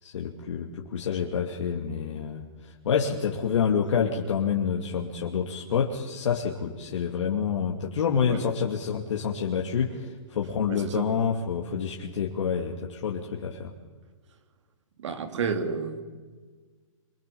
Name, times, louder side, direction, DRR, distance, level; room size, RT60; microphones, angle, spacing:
voice 1, 0.0-13.7, left 7 dB, 65° left, 0 dB, 2.7 m, -28 dB
voice 2, 10.7-11.0 15.0-16.0, right 5 dB, 60° right, 7 dB, 3.2 m, -30 dB
25.5 x 23.5 x 7.1 m, 1.4 s
hypercardioid pair, 155°, 17 cm